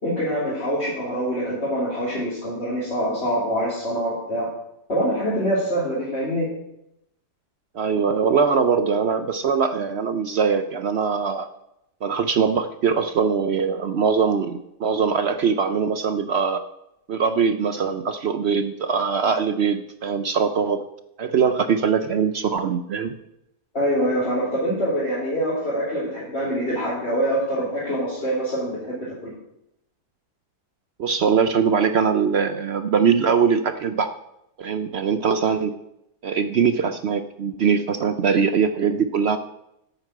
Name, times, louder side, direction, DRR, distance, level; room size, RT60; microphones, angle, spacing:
voice 1, 0.0-4.5 4.9-6.5 23.7-29.3, equal, 40° left, -9 dB, 3.7 m, -25 dB
voice 2, 7.7-11.5 12.0-16.6 17.1-20.8 21.2-23.2 31.0-34.1 34.6-35.7 36.2-39.4, right 6 dB, 65° right, 10 dB, 0.6 m, -22 dB
9.2 x 8.3 x 7.4 m, 0.83 s
omnidirectional pair, 1.7 m